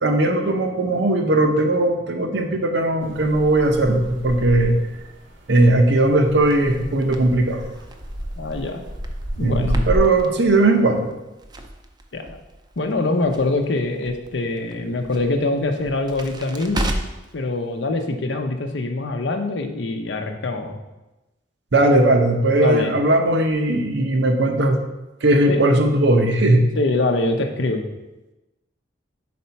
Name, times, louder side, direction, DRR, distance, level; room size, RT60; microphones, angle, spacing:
voice 1, 0.0-4.8 5.5-7.6 9.4-11.1 21.7-24.8 25.2-26.6, right 2 dB, 65° right, 4 dB, 0.7 m, -18 dB
sound 1, 3.0-10.0, equal, 80° right, 1.0 m, -32 dB
Crackle, 6.4-17.3, right 1 dB, 25° right, 0.5 m, -35 dB
voice 2, 8.4-8.8 9.4-9.8 12.1-12.4 12.8-16.9 17.3-20.8 22.5-23.0 25.5-25.6 26.8-27.9, left 2 dB, 75° left, 5 dB, 0.7 m, -24 dB
4.2 x 4.2 x 5.7 m, 1.0 s
head